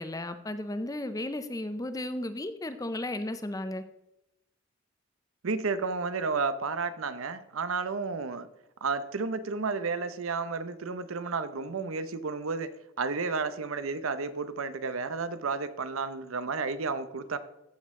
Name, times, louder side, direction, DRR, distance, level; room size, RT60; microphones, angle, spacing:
voice 1, 0.0-3.8, left 1 dB, 15° left, 10 dB, 0.5 m, -34 dB
voice 2, 5.4-8.5 8.8-17.4, right 4 dB, 75° right, 13 dB, 0.7 m, -32 dB
15.0 x 6.4 x 3.7 m, 0.88 s
head